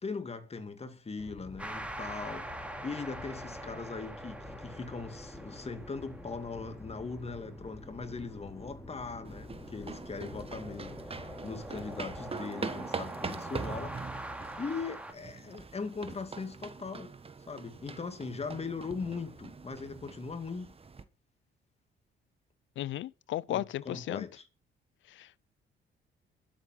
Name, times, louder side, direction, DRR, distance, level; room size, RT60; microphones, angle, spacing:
voice 1, 0.0-14.0 14.6-17.1 17.5-20.7 23.5-24.5, left 4 dB, 30° left, 2.3 m, -40 dB
sound 1, 1.2-12.3, left 2 dB, 15° left, 2.5 m, -49 dB
sound 2, 1.6-15.1, right 1 dB, 5° right, 2.5 m, -45 dB
sound 3, 9.3-21.0, right 4 dB, 30° right, 1.4 m, -43 dB
voice 2, 22.8-24.2 25.2-25.4, left 14 dB, 75° left, 0.7 m, -35 dB
12.5 x 7.9 x 7.3 m
cardioid pair, 90°, 20 cm